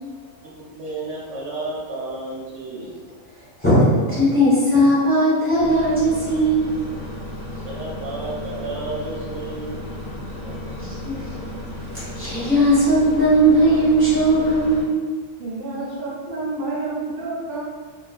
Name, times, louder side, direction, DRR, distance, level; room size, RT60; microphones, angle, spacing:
voice 1, 0.4-3.0 7.4-9.8 10.4-10.8, right 2 dB, 90° right, -5 dB, 1.1 m, -32 dB
voice 2, 3.6-6.7 10.8-11.1 11.9-15.0, right 1 dB, 10° left, -11 dB, 1.0 m, -18 dB
sound 1, 5.6-14.8, left 1 dB, 35° left, 0.7 m, -34 dB
voice 3, 15.4-17.6, right 3 dB, 60° right, -8 dB, 0.6 m, -29 dB
2.3 x 2.3 x 2.4 m, 1.5 s
omnidirectional pair, 1.3 m